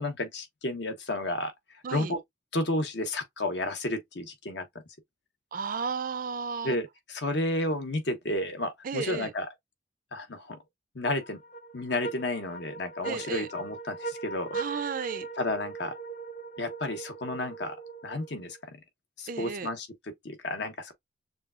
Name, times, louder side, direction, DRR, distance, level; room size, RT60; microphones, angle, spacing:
voice 1, 0.0-1.5 1.9-2.2 2.5-4.6 6.6-9.5 10.1-10.6 10.9-11.4 11.7-14.5 15.4-15.9 16.6-17.7 18.0-18.6 19.2-20.9, left 1 dB, 65° left, 1.1 m, -32 dB
voice 2, 5.5-6.8 8.8-9.3 13.0-13.5 14.5-15.3 19.3-19.7, right 5 dB, 50° right, 0.5 m, -33 dB
sound 1, 11.0-18.6, right 4 dB, 40° left, 0.7 m, -40 dB
6.6 x 2.3 x 2.5 m
head